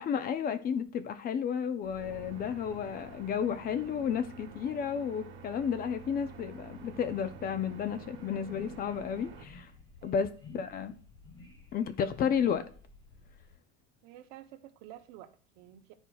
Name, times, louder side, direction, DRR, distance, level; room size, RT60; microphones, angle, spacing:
voice 1, 0.0-9.7 10.0-11.0 11.7-12.6, left 7 dB, 30° left, 0.5 m, -32 dB
sound 1, 1.8-9.4, right 4 dB, 35° right, 1.4 m, -48 dB
sound 2, 8.4-8.9 9.3-9.8 10.3-10.9 11.2-11.7 12.1-12.6 13.0-13.1, left 3 dB, 70° left, 2.2 m, -53 dB
Wind / Subway metro underground, 8.5-13.5, left 3 dB, 15° left, 1.5 m, -57 dB
voice 2, 10.0-10.3 14.0-15.9, right 13 dB, 80° right, 0.9 m, -51 dB
11.0 x 4.4 x 2.3 m
cardioid pair, 150°, 32 cm